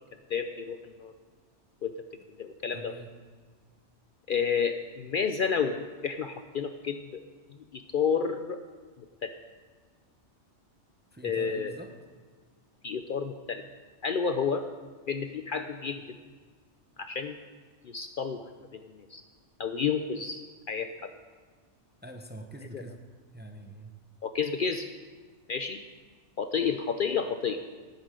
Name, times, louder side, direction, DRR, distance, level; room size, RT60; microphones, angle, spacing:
voice 1, 0.3-1.1 1.8-1.9 2.4-2.9 4.3-7.2 7.5-8.6 9.0-9.3 11.2-11.7 12.8-13.6 14.0-14.6 15.1-16.2 17.0-17.4 17.8-18.4 18.7-19.2 19.6-20.4 20.7-20.9 22.7-22.8 24.2-24.9 25.5-25.8 26.4-27.6, left 6 dB, 55° left, 8 dB, 0.6 m, -30 dB
voice 2, 2.7-3.1 11.1-11.9 22.0-23.0 23.3-23.9, right 1 dB, 10° right, 5 dB, 0.6 m, -44 dB
15.0 x 11.0 x 3.8 m, 1.5 s
omnidirectional pair, 1.2 m